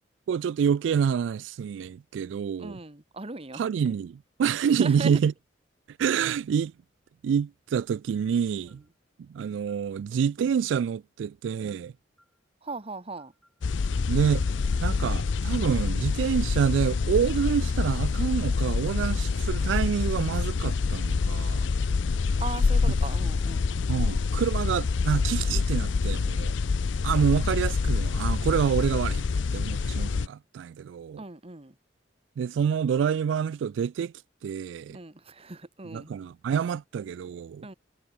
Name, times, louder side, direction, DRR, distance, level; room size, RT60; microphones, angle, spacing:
voice 1, 0.3-2.8 3.5-5.3 6.0-6.7 7.2-8.8 9.3-11.9 14.1-14.5 14.8-21.7 23.9-26.5 27.0-29.2 29.5-31.2 32.4-34.1 34.4-35.0 35.8-37.7, right 7 dB, 85° right, 0.3 m, -27 dB
voice 2, 2.6-4.0 4.8-5.2 12.6-13.3 22.4-23.7 31.2-31.7 34.9-36.1 37.6-37.7, right 3 dB, 30° right, 1.6 m, -38 dB
sound 1, 8.7-9.0 9.7-9.9 10.7-11.0 11.7-11.9 12.2-12.4 12.7-12.9 13.2-15.7, equal, ahead, 6.2 m, -62 dB
sound 2, 13.6-30.3, left 4 dB, 85° left, 0.5 m, -26 dB
head